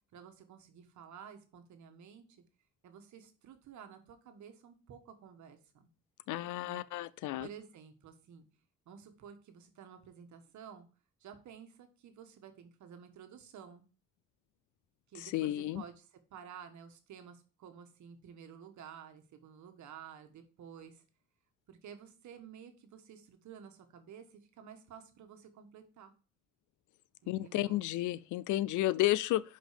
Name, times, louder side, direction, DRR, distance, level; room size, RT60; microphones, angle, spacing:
voice 1, 0.1-2.4 2.8-5.9 6.7-6.9 7.4-8.4 8.9-10.9 11.2-13.9 15.1-21.0 21.7-26.1 27.2-27.8, right 7 dB, 70° right, 1.4 m, -52 dB
voice 2, 6.3-7.5 15.2-15.8 27.3-29.4, left 15 dB, 80° left, 0.5 m, -32 dB
5.4 x 5.3 x 5.0 m
cardioid pair, 90°, 30 cm